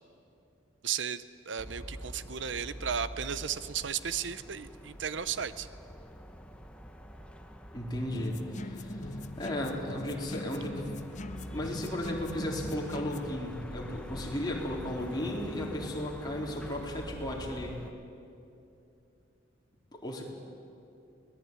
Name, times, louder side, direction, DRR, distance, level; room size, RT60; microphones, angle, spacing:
voice 1, 0.8-5.7, right 7 dB, 75° right, 14 dB, 0.8 m, -35 dB
sound 1, 1.6-17.9, equal, 5° left, 1.2 m, -45 dB
voice 2, 7.7-9.0 9.4-10.9 11.5-17.8 19.9-20.2, left 1 dB, 20° left, -2 dB, 4.0 m, -35 dB
sound 2, 8.1-13.3, left 1 dB, 40° left, 0.8 m, -41 dB
24.5 x 19.5 x 9.6 m, 2.7 s
head